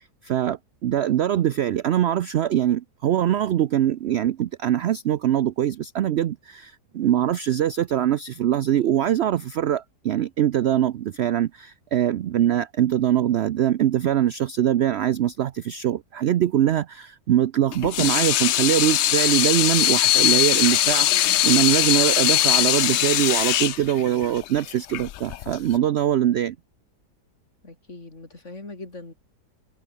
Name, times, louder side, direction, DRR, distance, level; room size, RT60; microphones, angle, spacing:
voice 1, 0.0-21.1 21.4-26.6, right 11 dB, 75° right, 0.6 m, -23 dB
voice 2, 1.1-1.4 27.6-29.1, left 2 dB, 45° left, 4.3 m, -41 dB
Water tap faucet / Sink (filling or washing), 17.7-25.8, left 13 dB, 85° left, 0.6 m, -21 dB
omnidirectional pair, 1.8 m